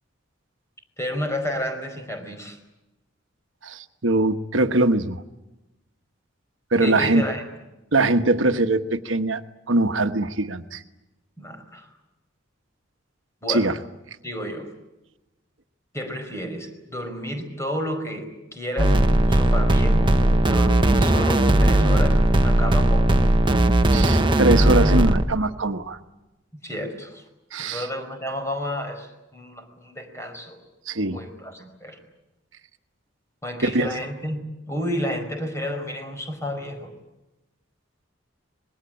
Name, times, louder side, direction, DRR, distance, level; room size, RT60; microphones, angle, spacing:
voice 1, 1.0-2.6 6.8-7.5 11.4-11.9 13.4-13.7 14.2-14.7 15.9-23.3 26.6-27.2 27.6-30.6 31.1-32.0 33.4-36.9, equal, 15° left, 5 dB, 5.0 m, -31 dB
voice 2, 3.6-5.2 6.7-7.2 7.9-9.4 9.7-10.8 13.5-13.7 23.9-26.0 27.5-27.8 30.9-31.2 33.6-33.9, right 2 dB, 85° right, 8 dB, 1.2 m, -22 dB
sound 1, 18.8-25.2, right 1 dB, 25° right, 1.2 m, -18 dB
26.0 x 21.0 x 9.0 m, 0.99 s
head